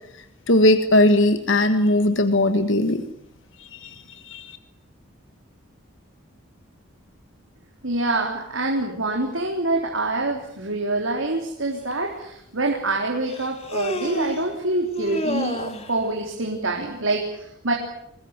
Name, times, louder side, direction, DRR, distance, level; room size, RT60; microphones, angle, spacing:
voice 1, 0.5-3.0 3.6-4.6, left 1 dB, 65° left, 9 dB, 1.6 m, -19 dB
voice 2, 7.8-17.7, right 2 dB, 70° right, 1 dB, 3.8 m, -26 dB
Human voice, 11.9-12.0 13.3-14.5 14.9-15.9, left 1 dB, 30° left, 2.6 m, -29 dB
24.5 x 20.5 x 9.7 m, 0.78 s
head